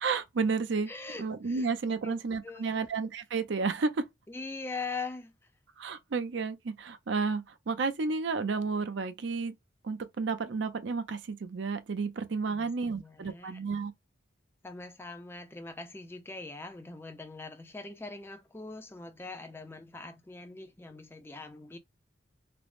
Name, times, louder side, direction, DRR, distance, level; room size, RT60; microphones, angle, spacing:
voice 1, 0.0-0.9 1.2-4.1 5.8-9.5 9.8-13.9, right 4 dB, 65° right, 0.5 m, -31 dB
voice 2, 0.9-1.7 2.0-2.2 2.4-2.8 4.3-5.3 12.5-13.6 14.6-21.8, left 3 dB, 10° left, 0.4 m, -42 dB
3.3 x 2.0 x 2.4 m
head